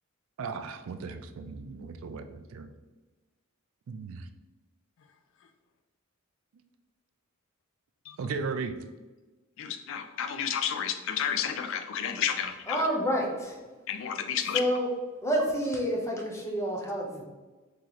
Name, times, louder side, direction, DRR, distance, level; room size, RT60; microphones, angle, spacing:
voice 1, 0.4-2.7 3.9-4.3 8.2-8.8, right 4 dB, 75° right, 8 dB, 0.3 m, -36 dB
voice 2, 9.6-12.8 13.9-14.6, left 8 dB, 65° left, 8 dB, 0.4 m, -31 dB
voice 3, 12.7-13.6 14.5-14.9 15.2-17.2, equal, 15° left, -1 dB, 0.7 m, -28 dB
3.0 x 2.8 x 3.9 m, 1.2 s
head